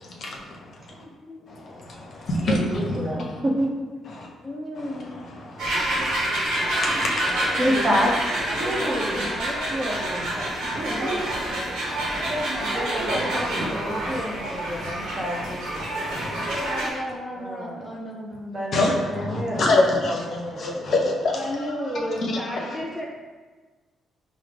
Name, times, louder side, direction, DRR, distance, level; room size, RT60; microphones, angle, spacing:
voice 1, 0.0-1.0 1.5-3.4 4.1-4.3 4.7-7.6 9.9-10.4 10.7-10.8 11.3-11.4 11.9-12.4 13.1-13.4 13.9-14.9 15.4-15.5 16.0-16.6 18.7-22.8, left 2 dB, 55° left, -1 dB, 0.7 m, -28 dB
voice 2, 1.2-1.6 4.4-5.2 8.5-9.6 12.6-13.2 16.6-18.6 21.3-23.0, equal, 10° left, -3 dB, 0.5 m, -33 dB
voice 3, 2.4-3.7 7.6-8.2 8.5-9.3 9.7-11.2 12.9-16.0 17.4-17.9 18.5-19.9 20.3-20.9, equal, 35° right, -3 dB, 0.8 m, -29 dB
sound 1, 5.6-16.9, right 1 dB, 85° right, 1.0 m, -27 dB
4.7 x 2.0 x 3.3 m, 1.4 s
cardioid pair, 90°, 0 cm